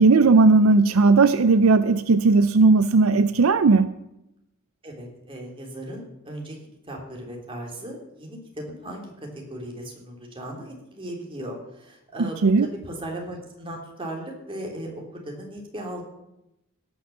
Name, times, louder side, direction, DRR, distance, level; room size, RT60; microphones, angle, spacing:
voice 1, 0.0-3.9 12.2-12.7, right 3 dB, 75° right, 13 dB, 0.5 m, -17 dB
voice 2, 4.8-6.6 6.9-16.0, right 1 dB, 25° right, 0 dB, 3.3 m, -37 dB
17.5 x 6.2 x 7.1 m, 0.87 s
head